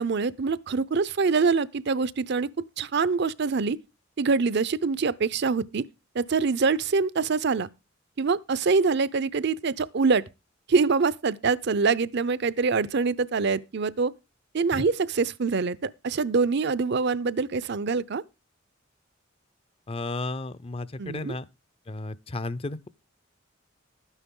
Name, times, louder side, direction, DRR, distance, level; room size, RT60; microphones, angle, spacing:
voice 1, 0.0-2.5 2.8-3.8 4.2-5.9 6.1-7.7 8.2-10.2 10.7-14.1 14.5-18.2 21.0-21.4, right 4 dB, 60° right, 0.6 m, -25 dB
voice 2, 19.9-21.5 21.9-22.9, left 2 dB, 30° left, 0.5 m, -33 dB
12.5 x 9.9 x 3.8 m
head